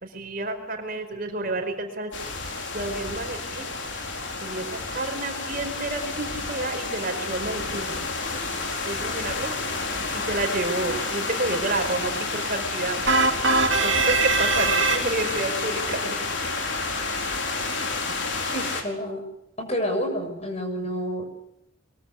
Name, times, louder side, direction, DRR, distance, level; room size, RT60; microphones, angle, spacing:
voice 1, 0.0-2.1 2.7-3.7 4.4-8.0 8.8-9.6 10.1-13.0 13.8-16.2, right 2 dB, 45° right, 5 dB, 4.7 m, -30 dB
sound 1, 2.1-18.8, left 3 dB, 60° left, 4.4 m, -30 dB
sound 2, 13.1-15.5, right 3 dB, 65° right, 2.8 m, -22 dB
voice 2, 18.5-19.2 19.6-21.2, equal, 30° left, 5 dB, 6.5 m, -29 dB
23.5 x 23.0 x 8.3 m, 0.80 s
head